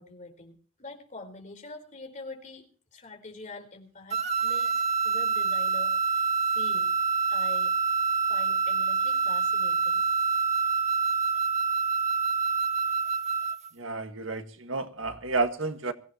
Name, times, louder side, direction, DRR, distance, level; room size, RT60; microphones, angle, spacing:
voice 1, 0.0-6.9 7.3-7.7 8.3-10.0, left 2 dB, 35° left, 3 dB, 4.2 m, -45 dB
sound 1, 4.1-13.7, right 5 dB, 35° right, 1.8 m, -26 dB
voice 2, 13.7-15.9, right 3 dB, 70° right, 7 dB, 1.7 m, -31 dB
24.0 x 16.0 x 3.0 m, 0.40 s
head